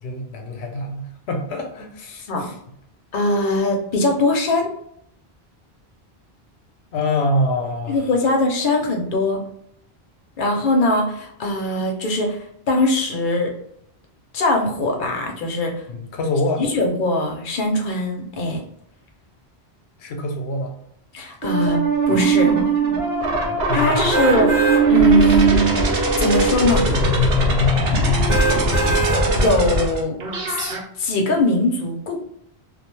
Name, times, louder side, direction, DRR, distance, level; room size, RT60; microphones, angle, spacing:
voice 1, 0.0-2.6 6.9-8.1 15.9-16.6 20.0-20.8 23.3-24.3 25.2-25.4 26.9-27.1, left 1 dB, 85° left, 2 dB, 0.9 m, -26 dB
voice 2, 3.1-4.7 7.9-9.4 10.4-13.5 14.3-15.7 16.6-18.6 21.1-21.8 22.1-22.5 23.7-25.8 26.2-26.9 29.3-30.2 30.5-30.7 31.0-32.2, left 1 dB, 60° left, 2 dB, 0.7 m, -21 dB
sound 1, 21.4-30.8, right 2 dB, 75° right, 0.9 m, -19 dB
sound 2, 24.1-24.8 25.4-25.5 28.3-29.2 29.8-29.9, right 4 dB, 50° right, 0.7 m, -21 dB
2.3 x 2.1 x 3.0 m, 0.70 s
omnidirectional pair, 1.1 m